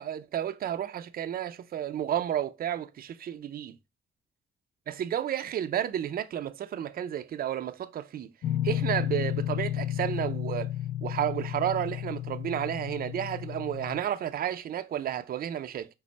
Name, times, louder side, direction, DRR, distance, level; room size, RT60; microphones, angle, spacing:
voice 1, 0.0-3.8 4.9-8.3 8.6-10.7 11.0-15.9, right 10 dB, 50° right, 0.4 m, -32 dB
sound 1, 8.4-14.0, left 12 dB, 55° left, 0.4 m, -32 dB
5.1 x 2.0 x 4.0 m
cardioid pair, 90°, 20 cm